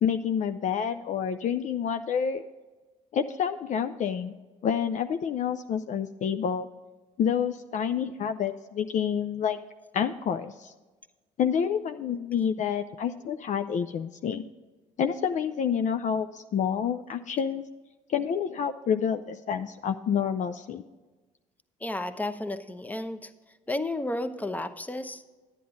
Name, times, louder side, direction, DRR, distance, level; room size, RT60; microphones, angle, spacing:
voice 1, 0.0-2.4 3.1-4.3 4.6-6.7 7.2-9.6 9.9-10.7 11.4-14.4 15.0-17.6 18.1-20.8, left 7 dB, 50° left, 8 dB, 0.5 m, -28 dB
voice 2, 21.8-23.3 23.7-25.3, left 2 dB, 10° left, 10 dB, 0.9 m, -32 dB
10.0 x 9.8 x 3.9 m, 1.3 s
hypercardioid pair, 60°, 17 cm